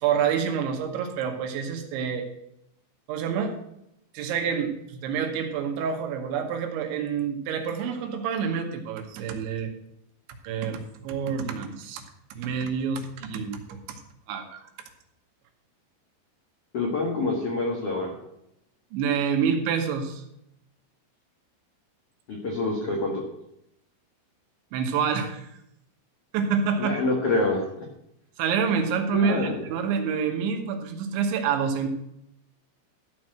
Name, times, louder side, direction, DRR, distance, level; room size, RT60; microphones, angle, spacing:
voice 1, 0.0-2.3 3.1-3.6 4.1-9.7 10.4-12.0 12.3-14.0 14.3-14.7 18.9-20.3 24.7-25.5 26.3-27.0 28.4-31.9, right 6 dB, 85° right, 5 dB, 3.5 m, -27 dB
voice 2, 16.7-18.1 22.3-23.2 26.8-27.8 29.1-29.5, left 2 dB, 75° left, -1 dB, 1.3 m, -26 dB
13.5 x 4.5 x 7.6 m, 0.81 s
omnidirectional pair, 5.3 m